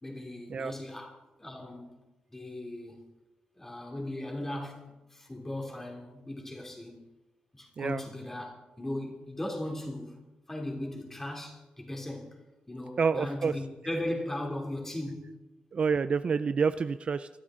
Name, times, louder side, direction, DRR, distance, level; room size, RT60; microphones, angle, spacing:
voice 1, 0.0-2.0 2.3-3.0 3.5-7.0 7.5-12.4 12.7-15.3, left 1 dB, 15° left, 3.0 m, -38 dB
voice 2, 13.0-13.6 15.7-17.3, right 5 dB, 40° right, 0.4 m, -28 dB
24.5 x 12.5 x 3.8 m
wide cardioid pair, 170°, 3 cm